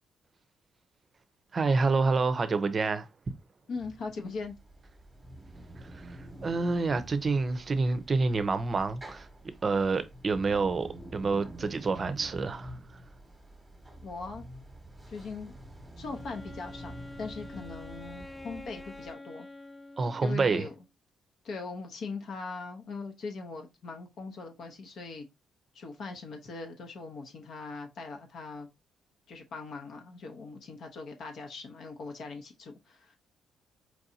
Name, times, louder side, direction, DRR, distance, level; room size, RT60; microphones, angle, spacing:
voice 1, 1.5-3.1 5.9-9.3 9.6-12.8 20.0-20.7, right 4 dB, 35° right, 0.6 m, -28 dB
voice 2, 3.7-4.5 14.0-14.4 15.1-15.5 16.0-16.9 17.2-19.5 20.2-20.7 21.4-25.3 25.7-28.7 29.3-33.2, left 4 dB, 65° left, 0.9 m, -40 dB
sound 1, 3.7-19.1, right 1 dB, 10° right, 1.1 m, -48 dB
Wind instrument woodwind instrument, 16.1-20.9, left 2 dB, 15° left, 0.3 m, -47 dB
4.6 x 2.6 x 2.7 m
cardioid pair, 90°, 0 cm